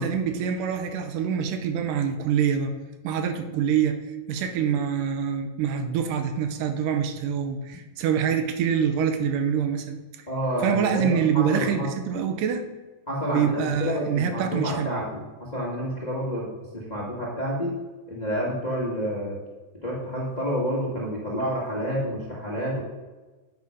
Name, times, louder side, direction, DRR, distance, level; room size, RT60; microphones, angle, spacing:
voice 1, 0.0-2.7 3.0-4.0 4.3-10.0 10.6-12.6 13.3-14.9, right 7 dB, 85° right, 6 dB, 2.3 m, -25 dB
voice 2, 10.3-11.9 13.1-17.8 18.1-19.4 19.8-22.8, equal, 45° left, -5 dB, 0.5 m, -29 dB
8.5 x 4.9 x 5.5 m, 1.2 s
omnidirectional pair, 3.8 m